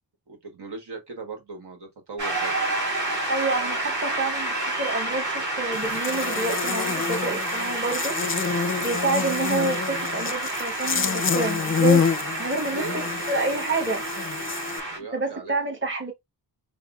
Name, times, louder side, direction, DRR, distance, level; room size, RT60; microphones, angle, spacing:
voice 1, 0.3-2.6 8.6-8.9 12.7-13.9 14.6-15.5, right 3 dB, 75° right, 1.3 m, -39 dB
Shout / Cheering / Applause, 2.2-15.0, right 2 dB, 45° right, 2.0 m, -29 dB
voice 2, 3.3-8.3 8.8-12.1 12.4-14.0 15.1-16.1, right 3 dB, 30° right, 1.2 m, -28 dB
Buzz, 5.7-14.8, left 5 dB, 30° left, 0.5 m, -27 dB
5.6 x 2.1 x 2.4 m
wide cardioid pair, 100°, 40 cm